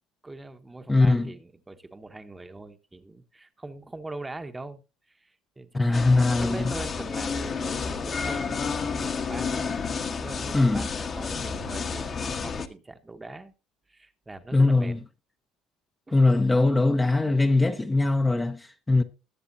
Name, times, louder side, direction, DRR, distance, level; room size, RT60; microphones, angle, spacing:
voice 1, 0.2-4.8 5.1-9.9 10.2-13.5 13.9-14.9 16.1-16.2, right 2 dB, 15° right, 1.1 m, -42 dB
voice 2, 0.9-1.3 5.7-6.7 10.5-10.8 14.5-15.0 16.1-19.0, left 2 dB, 15° left, 0.8 m, -21 dB
sound 1, 5.9-12.7, left 5 dB, 35° left, 1.3 m, -30 dB
20.5 x 7.4 x 2.7 m
supercardioid pair, 100°, 0 cm